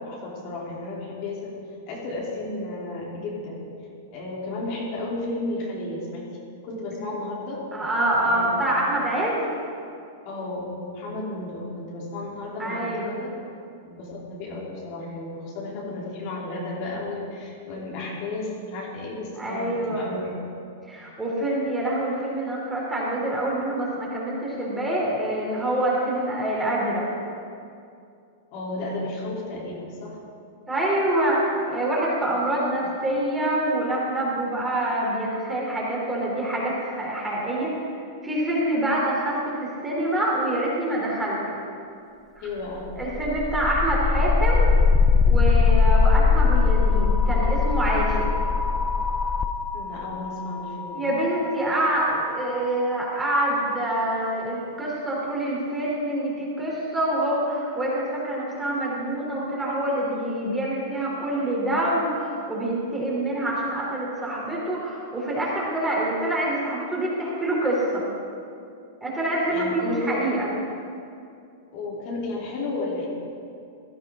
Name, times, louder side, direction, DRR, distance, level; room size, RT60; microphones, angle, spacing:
voice 1, 0.0-1.6 1.9-3.6 4.1-6.3 6.6-7.6 8.2-8.9 10.2-13.3 13.9-20.4 28.5-30.2 32.3-32.4 32.8-32.9 42.4-42.9 49.7-51.0 69.5-70.2 71.7-73.1, left 2 dB, 50° left, -5 dB, 3.8 m, -33 dB
voice 2, 7.7-9.5 12.6-13.1 19.4-20.1 20.9-27.1 30.7-37.9 38.2-41.6 42.4-42.5 43.0-44.7 45.3-48.3 50.9-68.0 69.0-70.5, right 1 dB, 10° right, -5 dB, 3.8 m, -26 dB
sound 1, 42.9-52.8, left 4 dB, 20° left, 0.7 m, -21 dB
16.0 x 11.0 x 3.9 m, 2.4 s
hypercardioid pair, 120°, 0 cm